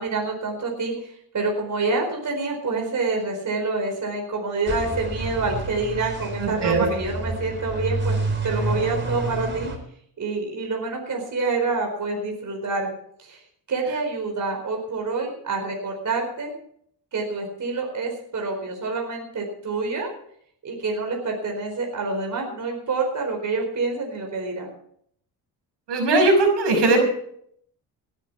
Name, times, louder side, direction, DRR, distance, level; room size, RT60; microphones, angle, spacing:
voice 1, 0.0-8.1 8.4-9.7 10.2-12.9 13.2-13.4 13.7-16.5 17.1-20.1 20.6-24.7, right 3 dB, 45° right, 1 dB, 4.5 m, -27 dB
sound 1, 4.7-9.8, right 2 dB, 25° right, 3.9 m, -28 dB
voice 2, 6.4-6.8 25.9-27.0, right 2 dB, 75° right, 3 dB, 5.9 m, -19 dB
19.0 x 11.0 x 4.7 m, 0.67 s
cardioid pair, 90°, 41 cm